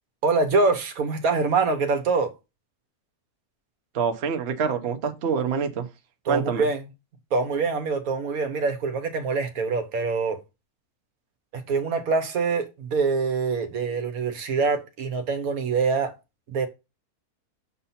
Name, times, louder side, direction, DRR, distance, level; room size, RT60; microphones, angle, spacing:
voice 1, 0.2-2.3 6.3-6.8 7.3-10.4 11.5-16.1 16.5-16.7, right 4 dB, 70° right, 1.4 m, -24 dB
voice 2, 3.9-5.9 6.3-6.7, right 6 dB, 55° right, 0.9 m, -26 dB
6.7 x 2.8 x 5.5 m
omnidirectional pair, 1.6 m